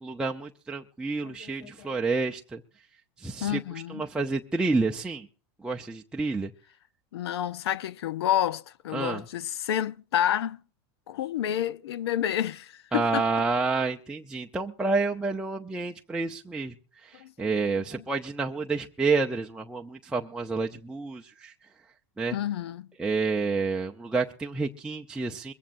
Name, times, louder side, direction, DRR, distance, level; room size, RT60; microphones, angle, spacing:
voice 1, 0.0-2.6 3.2-5.3 5.6-6.5 8.9-9.2 12.9-16.7 17.0-21.5 22.2-22.4 23.0-25.5, right 3 dB, 5° right, 0.6 m, -29 dB
voice 2, 1.2-2.0 3.4-4.0 7.1-10.6 11.1-13.2 17.2-17.5 22.3-22.9, left 11 dB, 85° left, 0.6 m, -29 dB
22.0 x 15.5 x 2.6 m
supercardioid pair, 130°, 13 cm